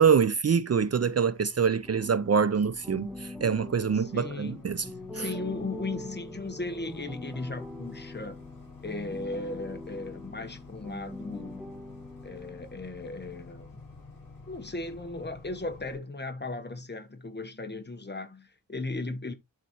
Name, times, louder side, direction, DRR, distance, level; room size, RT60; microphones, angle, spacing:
voice 1, 0.0-4.8 5.1-5.3, right 6 dB, 45° right, 0.5 m, -25 dB
sound 1, 0.7-16.0, left 3 dB, 70° left, 5.9 m, -49 dB
sound 2, 1.9-12.8, left 1 dB, ahead, 1.2 m, -43 dB
voice 2, 3.9-4.7 5.1-8.4 8.8-11.6 12.2-13.8 14.5-19.3, left 2 dB, 30° left, 1.1 m, -37 dB
11.5 x 4.1 x 3.0 m
wide cardioid pair, 105°, 34 cm